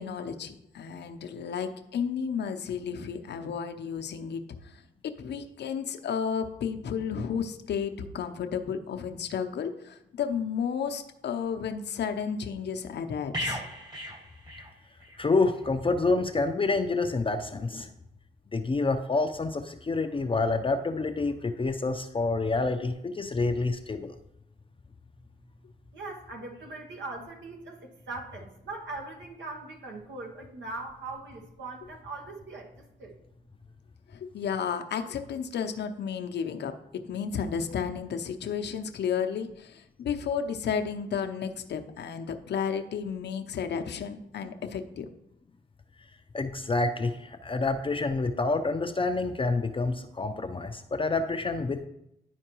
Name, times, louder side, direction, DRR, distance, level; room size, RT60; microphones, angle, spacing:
voice 1, 0.0-13.6 34.1-45.1, left 7 dB, 65° left, 6 dB, 0.7 m, -32 dB
sound 1, 13.3-15.2 15.5-15.7, equal, 20° right, 1.3 m, -36 dB
voice 2, 15.2-17.9 18.5-24.2 46.3-51.8, left 3 dB, 30° left, 5 dB, 0.6 m, -28 dB
voice 3, 25.9-33.2, right 3 dB, 70° right, 1 dB, 1.1 m, -40 dB
11.0 x 4.4 x 3.0 m, 0.82 s
supercardioid pair, 45°, 19 cm